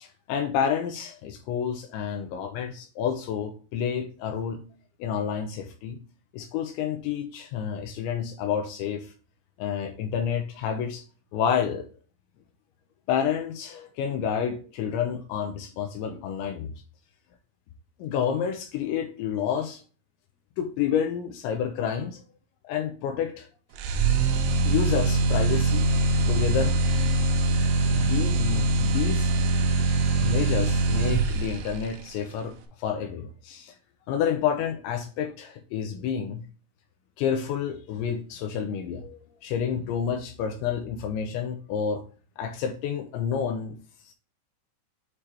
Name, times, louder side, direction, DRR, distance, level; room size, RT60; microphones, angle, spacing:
voice 1, 0.0-4.6 5.0-6.0 6.3-9.1 9.6-11.0 11.3-11.9 13.1-16.7 18.0-19.8 20.6-22.2 22.6-23.5 24.6-25.9 26.3-26.8 27.9-29.3 30.2-33.7 34.1-36.4 37.2-42.0 42.4-43.8 44.1-44.2, left 8 dB, 85° left, 5 dB, 2.8 m, -29 dB
sound 1, 23.8-31.8, right 3 dB, 75° right, 3.4 m, -23 dB
8.7 x 2.9 x 4.8 m, 0.38 s
omnidirectional pair, 5.9 m